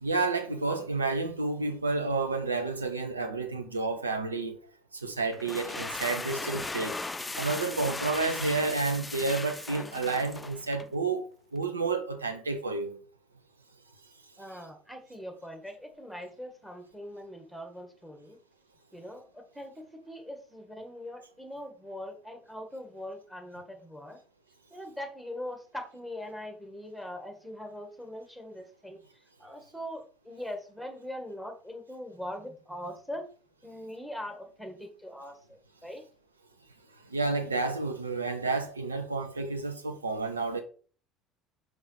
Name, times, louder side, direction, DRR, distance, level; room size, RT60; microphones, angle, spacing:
voice 1, 0.0-4.5 5.0-7.0 7.4-11.3 11.5-13.0 37.1-40.6, right 3 dB, 85° right, 0.8 m, -30 dB
sound 1, 5.3-10.9, left 3 dB, 15° left, 0.5 m, -37 dB
voice 2, 14.4-18.4 18.9-24.2 24.7-29.0 29.4-33.3 33.6-36.0, left 1 dB, 5° right, 1.9 m, -41 dB
5.5 x 4.8 x 4.7 m
figure-of-eight pair, 60°, 0 cm